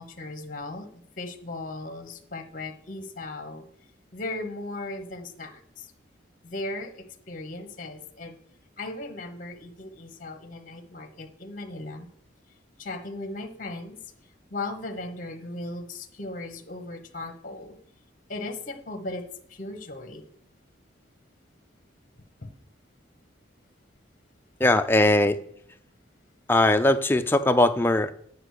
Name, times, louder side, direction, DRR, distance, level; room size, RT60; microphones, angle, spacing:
voice 1, 0.0-3.6 4.1-5.9 6.4-8.3 8.8-12.1 12.8-14.0 14.5-17.8 18.3-19.2 19.5-20.2 22.4-22.5, left 2 dB, 45° left, 8 dB, 1.0 m, -37 dB
voice 2, 24.6-25.4 26.5-28.1, left 1 dB, 10° left, 8 dB, 0.4 m, -20 dB
9.9 x 4.9 x 6.5 m, 0.65 s
head